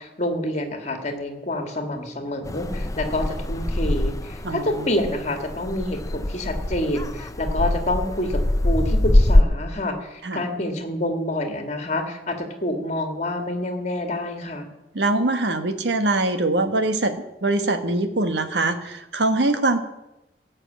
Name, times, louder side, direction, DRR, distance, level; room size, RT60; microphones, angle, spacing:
voice 1, 0.0-14.7, left 1 dB, 40° left, 5 dB, 2.3 m, -27 dB
sound 1, 2.4-9.4, left 1 dB, 20° left, 0.6 m, -23 dB
voice 2, 4.4-4.9 10.2-10.4 14.9-19.8, right 2 dB, 70° right, 8 dB, 1.4 m, -23 dB
16.5 x 6.5 x 8.6 m, 0.96 s
head